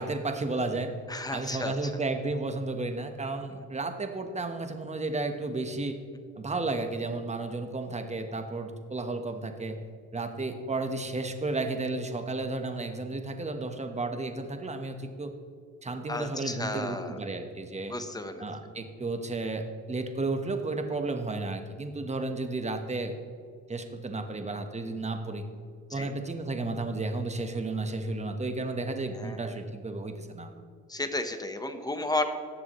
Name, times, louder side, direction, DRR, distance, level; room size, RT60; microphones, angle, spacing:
voice 1, 0.0-0.9 1.3-6.0 6.4-9.8 10.1-15.3 15.8-18.0 18.4-23.1 23.7-25.4 25.9-30.5, right 2 dB, 20° right, 6 dB, 1.2 m, -33 dB
voice 2, 1.1-1.9 16.1-17.2 17.9-18.4 25.9-26.1 29.1-29.6 30.9-32.2, left 2 dB, 10° left, 7 dB, 1.1 m, -33 dB
17.5 x 7.0 x 3.1 m, 2.1 s
cardioid pair, 90°, 30 cm